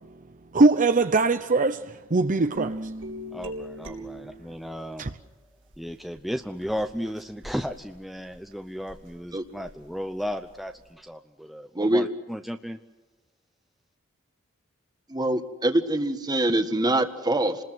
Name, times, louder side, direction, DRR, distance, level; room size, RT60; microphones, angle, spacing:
voice 1, 0.5-2.8 5.0-5.1, right 3 dB, 40° right, 0.8 m, -21 dB
sound 1, 2.5-4.9 5.7-10.9, equal, 65° right, 3.6 m, -41 dB
voice 2, 3.3-5.1 5.8-12.8, equal, ahead, 0.8 m, -34 dB
voice 3, 11.7-12.0 15.1-17.6, right 1 dB, 20° right, 1.6 m, -24 dB
29.5 x 20.5 x 7.8 m
head